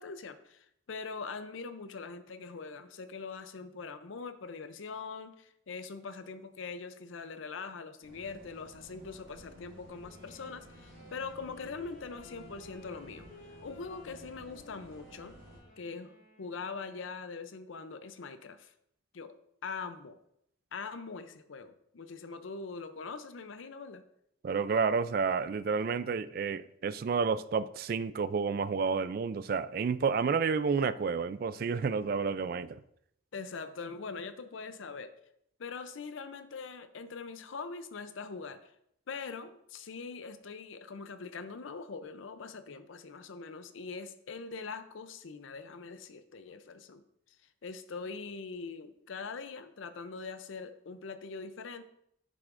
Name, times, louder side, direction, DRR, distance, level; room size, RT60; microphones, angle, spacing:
voice 1, 0.0-13.3 13.6-15.3 15.8-18.7 19.1-20.2 20.7-24.0 33.3-35.1 35.6-38.7 39.1-47.0 47.6-51.8, left 4 dB, 80° left, 0.6 m, -42 dB
sound 1, 8.0-15.6, equal, 80° right, 3.3 m, -54 dB
Wind instrument woodwind instrument, 10.0-16.9, left 2 dB, 50° left, 3.5 m, -56 dB
voice 2, 24.4-32.8, right 5 dB, 50° right, 0.3 m, -30 dB
9.7 x 7.6 x 2.5 m
head